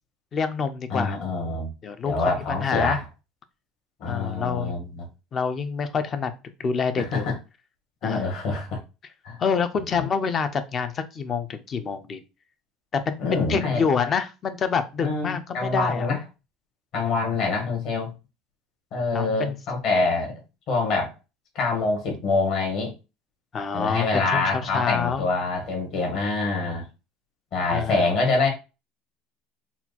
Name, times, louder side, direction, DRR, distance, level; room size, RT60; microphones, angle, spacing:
voice 1, 0.3-1.2 1.8-3.0 4.1-4.8 5.3-6.3 6.6-7.3 8.0-8.2 9.4-12.2 12.9-16.1 19.1-19.6 23.5-25.3 27.7-28.1, left 6 dB, 25° left, 0.4 m, -27 dB
voice 2, 0.9-1.7 2.0-3.0 4.0-5.0 7.0-7.3 8.0-8.8 9.2-9.4 9.9-10.0 13.2-13.8 15.0-16.2 16.9-18.1 18.9-20.4 20.7-21.1 21.5-22.9 23.7-26.9 27.5-28.5, left 3 dB, 45° left, 1.6 m, -25 dB
4.2 x 2.3 x 4.2 m
cardioid pair, 175°, 0 cm